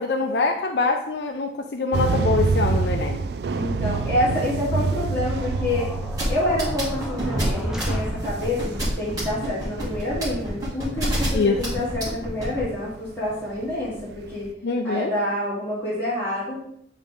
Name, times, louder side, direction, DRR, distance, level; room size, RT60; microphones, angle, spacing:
voice 1, 0.0-3.2 11.3-11.6 14.6-15.1, left 3 dB, 75° left, 3 dB, 0.5 m, -24 dB
sound 1, 1.9-14.5, right 4 dB, 70° right, 0.3 m, -28 dB
voice 2, 3.5-5.9 6.3-14.5 14.8-16.6, left 1 dB, 15° left, -10 dB, 2.3 m, -27 dB
sound 2, 5.3-8.7, equal, 5° right, 0.6 m, -31 dB
sound 3, 6.2-12.6, equal, 20° right, 2.4 m, -27 dB
8.6 x 3.7 x 3.6 m, 0.70 s
head